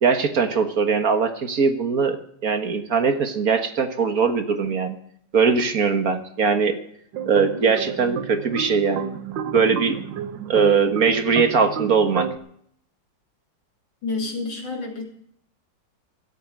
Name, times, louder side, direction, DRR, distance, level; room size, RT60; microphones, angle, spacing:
voice 1, 0.0-2.2 2.4-5.0 5.3-6.8 7.3-9.1 9.5-10.0 10.5-12.3, right 5 dB, 55° right, 8 dB, 1.7 m, -20 dB
sound 1, 7.1-12.4, right 8 dB, 85° right, 1.6 m, -31 dB
voice 2, 14.0-15.0, left 3 dB, 80° left, 2 dB, 4.0 m, -29 dB
14.5 x 8.7 x 8.7 m, 0.66 s
omnidirectional pair, 1.9 m